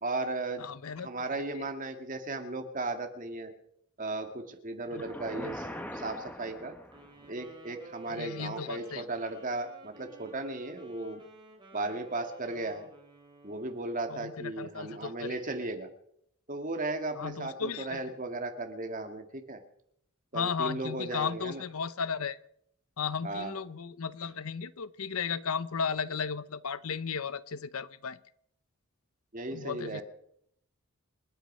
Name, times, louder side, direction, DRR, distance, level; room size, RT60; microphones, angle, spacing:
voice 1, 0.0-0.6 1.0-3.5 4.0-6.8 7.3-11.2 11.7-12.9 13.4-15.9 16.5-19.6 20.3-21.6 23.2-23.5 29.3-30.0, right 2 dB, 35° right, 5 dB, 2.0 m, -36 dB
voice 2, 0.6-1.1 1.5-1.6 5.4-5.5 8.1-9.0 14.1-15.3 17.2-18.0 20.3-22.4 23.0-28.2 29.5-30.0, left 6 dB, 75° left, 16 dB, 0.7 m, -35 dB
sound 1, 4.9-7.2, left 1 dB, 5° left, 1.3 m, -41 dB
Wind instrument woodwind instrument, 6.8-14.1, right 2 dB, 20° right, 4.6 m, -52 dB
28.0 x 9.4 x 5.5 m, 0.72 s
head